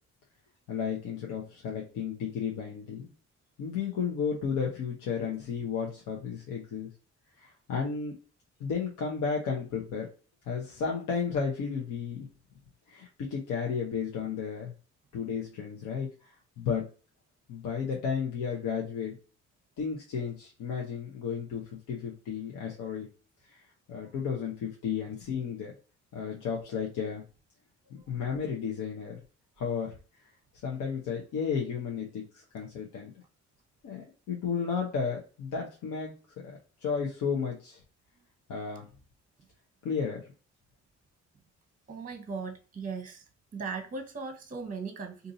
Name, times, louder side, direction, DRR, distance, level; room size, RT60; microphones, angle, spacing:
voice 1, 0.7-3.1 3.6-6.9 7.4-8.1 8.6-10.1 10.5-12.3 12.9-14.7 15.1-16.1 16.6-16.8 17.5-19.2 19.8-23.1 23.9-25.7 26.1-27.2 27.9-29.2 29.6-29.9 30.6-32.2 32.5-33.1 33.8-36.1 36.4-37.8 38.5-38.9 39.8-40.2, left 6 dB, 85° left, 0.9 m, -33 dB
voice 2, 41.9-43.2 43.5-45.3, right 4 dB, 25° right, 0.8 m, -38 dB
2.7 x 2.6 x 3.9 m
cardioid pair, 90°, 30 cm